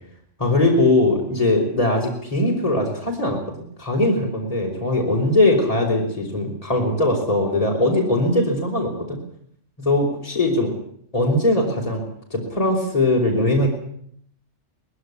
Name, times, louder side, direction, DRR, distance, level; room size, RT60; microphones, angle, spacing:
voice 1, 0.4-3.4 3.8-9.2 9.8-10.7 11.1-12.0 12.3-13.7, left 2 dB, 30° left, -1 dB, 5.2 m, -20 dB
20.0 x 16.5 x 10.0 m, 0.65 s
omnidirectional pair, 1.3 m